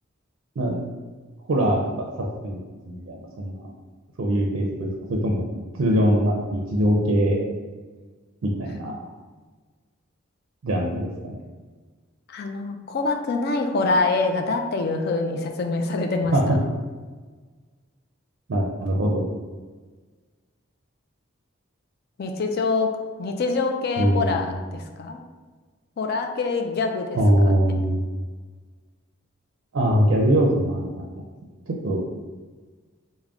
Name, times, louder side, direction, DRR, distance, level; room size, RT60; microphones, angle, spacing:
voice 1, 1.5-2.1 2.4-2.6 2.9-3.7 4.2-5.5 5.8-7.4 8.4-8.9 10.6-11.4 16.3-16.6 18.5-19.2 24.0-24.6 27.1-28.0 29.7-30.9 31.7-32.0, equal, 70° right, -2 dB, 0.4 m, -22 dB
voice 2, 12.3-16.3 22.2-22.9 23.2-24.5 24.7-25.2 26.0-27.2 27.4-27.7, left 3 dB, 50° left, 4 dB, 0.4 m, -25 dB
3.5 x 2.1 x 3.5 m, 1.4 s
head